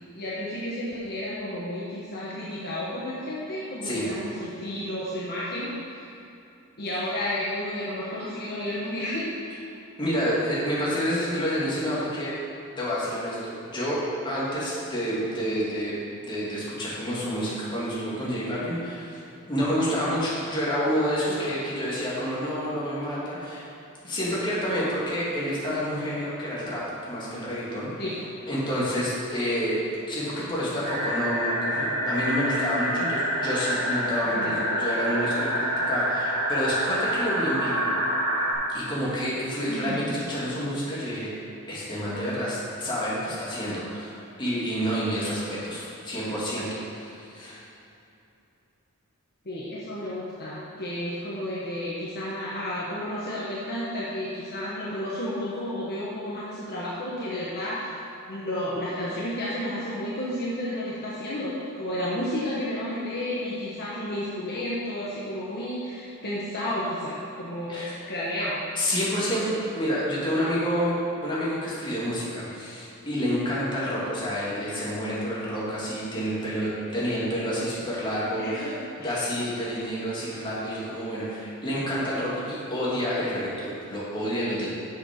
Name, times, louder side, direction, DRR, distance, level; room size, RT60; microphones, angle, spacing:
voice 1, 0.0-6.1 6.8-9.3 21.2-21.5 28.0-28.2 34.3-34.6 39.7-40.2 49.4-58.0 58.3-68.6 78.4-78.7 79.0-79.1, left 1 dB, 45° left, -7 dB, 1.3 m, -32 dB
voice 2, 10.0-12.3 12.8-14.0 14.2-19.2 19.5-23.6 24.0-27.9 28.5-29.8 30.1-37.9 38.7-41.3 41.7-47.6 67.7-67.9 68.8-78.7 79.0-84.8, equal, 20° left, -8 dB, 2.2 m, -29 dB
sound 1, 30.8-38.5, equal, 90° right, 2.0 m, -27 dB
7.2 x 7.2 x 5.2 m, 2.8 s
head